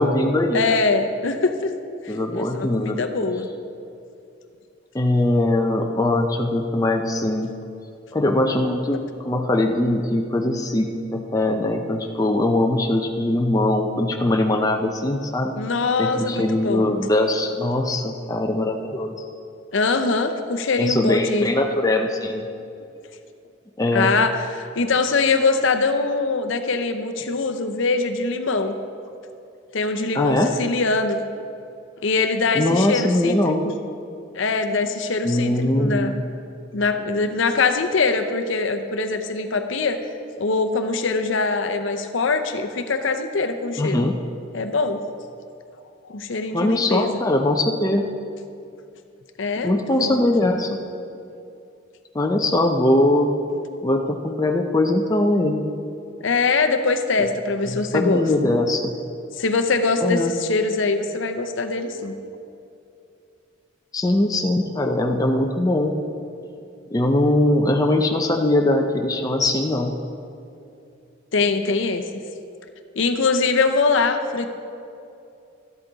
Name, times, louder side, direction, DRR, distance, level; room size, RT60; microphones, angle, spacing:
voice 1, 0.0-0.8 2.1-3.0 4.9-7.5 8.1-15.6 16.0-19.1 20.8-22.4 23.8-24.1 30.1-30.5 32.5-33.6 35.2-36.3 43.8-44.2 46.5-48.0 49.6-50.8 52.1-53.3 53.8-55.6 57.7-58.9 60.0-60.3 63.9-65.9 66.9-69.9, left 1 dB, 15° left, 3 dB, 0.5 m, -21 dB
voice 2, 0.5-1.7 2.0-3.5 15.6-16.9 19.7-21.5 23.9-28.8 29.7-31.2 32.0-33.7 34.3-36.1 36.7-40.0 40.4-44.1 44.5-45.0 46.1-47.2 49.4-50.2 56.2-58.5 59.4-62.2 71.3-72.0 73.0-74.5, left 4 dB, 70° left, 7 dB, 0.6 m, -23 dB
12.5 x 8.2 x 3.9 m, 2.6 s
head